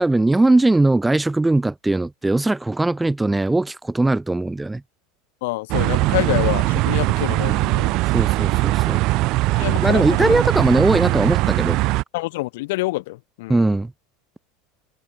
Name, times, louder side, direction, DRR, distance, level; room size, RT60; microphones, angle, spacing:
voice 1, 0.0-4.8 8.1-9.0 9.8-11.8 13.5-13.9, right 2 dB, 10° right, 1.4 m, -19 dB
voice 2, 5.4-8.0 8.3-8.6 9.6-10.3 12.1-13.7, left 21 dB, 75° left, 2.5 m, -27 dB
sound 1, 5.7-12.0, right 20 dB, 55° right, 3.1 m, -20 dB
supercardioid pair, 115°, 0 cm